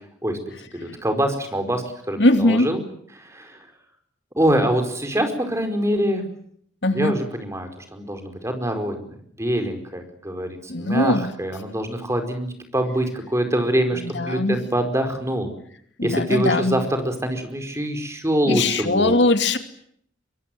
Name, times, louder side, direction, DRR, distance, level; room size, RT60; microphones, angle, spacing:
voice 1, 0.7-2.8 3.1-3.6 4.4-6.2 6.9-15.5 16.0-19.2, right 1 dB, 15° right, 7 dB, 4.8 m, -24 dB
voice 2, 2.2-2.7 6.8-7.2 10.7-11.3 14.0-14.6 16.0-16.8 18.4-19.6, left 2 dB, 65° left, 8 dB, 2.6 m, -20 dB
24.0 x 24.0 x 9.4 m, 0.66 s
head